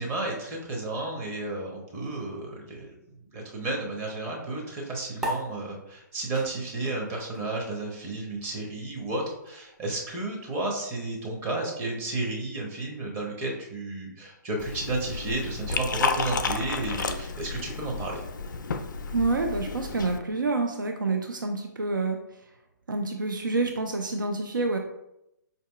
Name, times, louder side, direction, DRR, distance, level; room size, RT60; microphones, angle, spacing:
voice 1, 0.0-2.9 3.3-18.2, right 2 dB, 25° right, -2 dB, 0.7 m, -32 dB
sound 1, 5.2-12.0, right 1 dB, 5° right, 0.3 m, -41 dB
Liquid, 14.6-20.2, left 4 dB, 75° left, 0.4 m, -32 dB
voice 2, 19.1-22.2 22.9-24.8, right 3 dB, 90° right, 4 dB, 0.4 m, -27 dB
4.7 x 2.7 x 2.3 m, 0.84 s
figure-of-eight pair, 135°, 10 cm